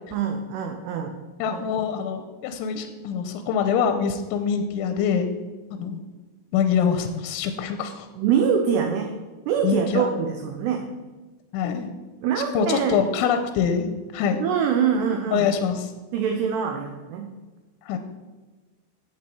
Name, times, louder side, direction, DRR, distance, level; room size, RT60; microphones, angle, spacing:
voice 1, 0.1-1.1 1.4-1.6 8.2-9.1 9.5-10.9 12.2-13.1 14.4-15.5 16.1-17.3, right 7 dB, 85° right, 4 dB, 2.3 m, -24 dB
voice 2, 1.4-5.3 5.8-6.0 6.5-8.1 9.6-10.1 11.5-11.9 12.5-14.4 15.3-15.9 17.9-18.0, left 7 dB, 80° left, 7 dB, 2.9 m, -24 dB
11.5 x 8.0 x 4.5 m, 1.2 s
omnidirectional pair, 5.8 m